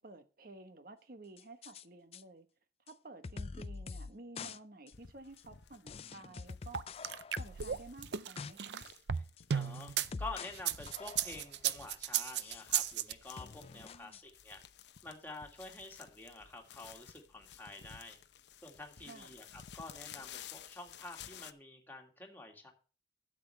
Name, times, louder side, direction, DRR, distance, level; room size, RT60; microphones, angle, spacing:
voice 1, 0.0-2.5 2.9-6.8 7.4-8.8 13.8-14.2 19.0-19.3, right 2 dB, 55° right, 1.1 m, -53 dB
sound 1, 1.4-1.8 2.1-2.2 2.9-3.0 3.2-4.1 4.4-4.6 4.9-5.0 5.4-5.5 5.9-7.8 8.1-8.5 8.9-9.0 9.4-10.6 10.9-11.5 12.1-13.0 13.4-14.2, left 4 dB, 35° left, 0.4 m, -45 dB
sound 2, 4.9-21.5, left 8 dB, 75° left, 0.7 m, -55 dB
sound 3, 6.7-10.1 10.5-13.1, right 9 dB, 75° right, 0.5 m, -34 dB
voice 2, 9.5-14.6 15.0-18.2 18.6-22.7, left 2 dB, 10° left, 2.1 m, -48 dB
12.0 x 7.7 x 3.3 m
head